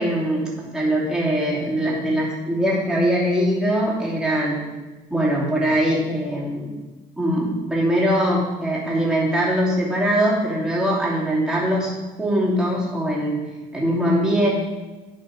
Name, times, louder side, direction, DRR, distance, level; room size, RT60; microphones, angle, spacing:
voice 1, 0.0-4.6 5.1-6.7 7.2-11.9 12.2-13.4 13.7-14.5, equal, 5° right, -6 dB, 2.9 m, -22 dB
11.0 x 4.4 x 5.0 m, 1.2 s
cardioid pair, 110°, 17 cm